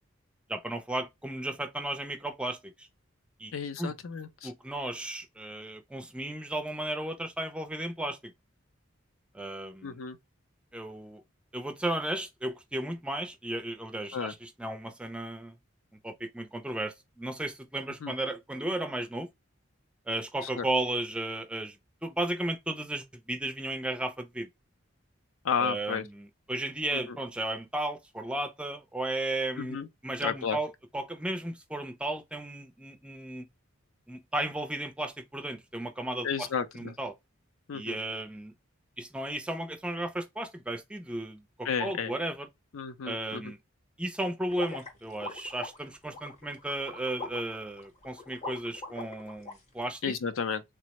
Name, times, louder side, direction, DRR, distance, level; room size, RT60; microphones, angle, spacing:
voice 1, 0.5-2.9 3.4-3.9 4.4-8.3 9.3-9.9 10.7-11.2 11.5-15.6 16.0-19.3 20.1-24.5 25.6-29.8 30.0-33.5 34.1-36.5 36.7-37.1 37.7-38.5 39.0-42.5 43.0-43.6 44.0-50.0, right 1 dB, 5° right, 0.3 m, -34 dB
voice 2, 3.5-4.5 9.8-10.2 14.1-14.3 18.0-18.1 20.6-20.7 25.4-26.1 26.9-27.2 29.6-29.9 30.2-30.6 36.2-36.9 37.7-38.0 41.6-42.1 42.7-43.5 50.0-50.6, left 6 dB, 75° left, 0.5 m, -32 dB
sound 1, 44.5-49.5, left 3 dB, 30° left, 0.7 m, -42 dB
3.5 x 2.0 x 2.9 m
head